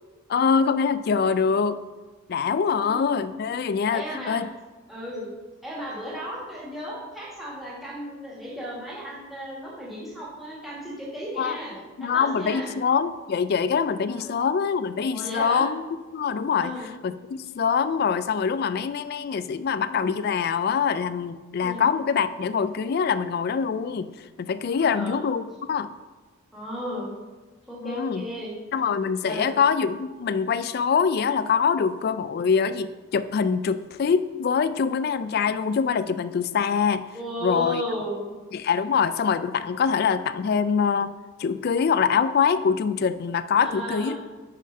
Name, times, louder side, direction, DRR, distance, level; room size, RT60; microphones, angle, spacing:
voice 1, 0.3-1.8 2.3-4.5 11.4-11.6 12.0-15.8 16.1-16.7 17.0-24.1 24.4-26.0 27.8-28.2 28.7-37.0 37.4-37.8 38.5-41.1 41.4-44.2, left 6 dB, 50° left, 13 dB, 0.3 m, -24 dB
voice 2, 2.7-3.0 3.9-4.4 4.9-5.3 5.6-12.8 14.1-14.3 15.1-15.6 16.5-16.9 21.6-21.8 24.7-25.2 26.5-27.1 27.7-28.5 29.2-29.5 37.1-38.3 43.6-44.2, equal, ahead, -6 dB, 1.7 m, -34 dB
5.3 x 5.0 x 5.5 m, 1.3 s
head